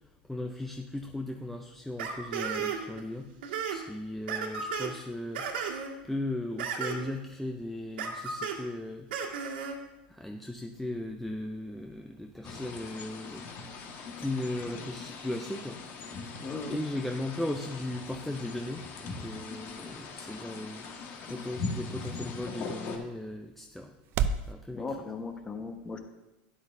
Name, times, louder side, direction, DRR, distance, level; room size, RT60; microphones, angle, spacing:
voice 1, 0.3-3.3 3.7-5.5 6.0-9.1 10.1-13.4 14.2-15.8 16.7-20.9 21.3-23.9 24.5-25.1, left 1 dB, 5° left, 3 dB, 0.6 m, -37 dB
sound 1, 2.0-3.0 3.3-3.8 4.3-4.9 5.3-5.9 6.6-7.1 8.0-8.6 9.1-9.8, right 6 dB, 85° right, 1.9 m, -34 dB
sound 2, 12.4-23.0, left 4 dB, 45° left, 1.6 m, -41 dB
voice 2, 16.4-16.8 24.7-26.0, left 3 dB, 20° left, 6 dB, 1.2 m, -37 dB
sound 3, 18.3-24.5, right 6 dB, 50° right, 0.5 m, -39 dB
12.5 x 10.5 x 2.7 m, 1.0 s
supercardioid pair, 115°, 5 cm